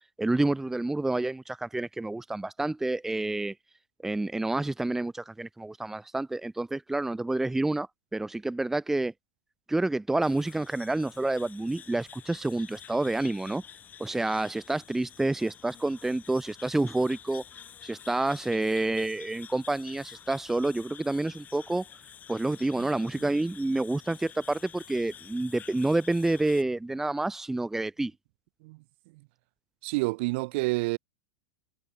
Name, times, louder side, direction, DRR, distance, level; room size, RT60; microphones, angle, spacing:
voice 1, 0.2-3.5 4.0-7.9 8.1-9.1 9.7-13.6 14.0-17.4 17.8-21.8 22.3-28.1, right 2 dB, 5° right, 1.1 m, -28 dB
sound 1, 10.2-26.6, left 9 dB, 25° left, 3.1 m, -50 dB
voice 2, 29.8-31.0, right 24 dB, 55° right, 2.3 m, -28 dB
supercardioid pair, 140°, 7 cm